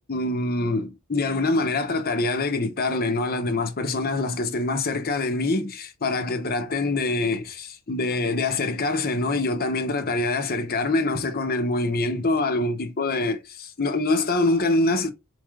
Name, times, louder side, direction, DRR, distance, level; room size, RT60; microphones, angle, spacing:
voice 1, 0.0-15.1, left 2 dB, 45° left, 0.8 m, -25 dB
4.5 x 3.2 x 2.4 m
head